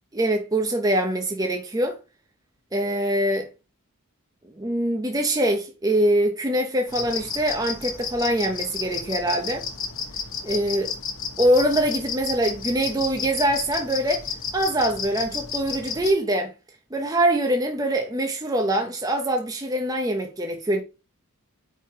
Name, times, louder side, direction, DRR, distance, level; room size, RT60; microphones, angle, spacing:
voice 1, 0.1-2.0 2.7-3.5 4.6-9.7 10.4-10.9 11.4-14.3 14.5-16.5 16.9-20.8, right 1 dB, 15° right, 0.7 m, -23 dB
sound 1, 6.9-16.1, left 6 dB, 60° left, 1.2 m, -32 dB
4.7 x 4.5 x 4.6 m
head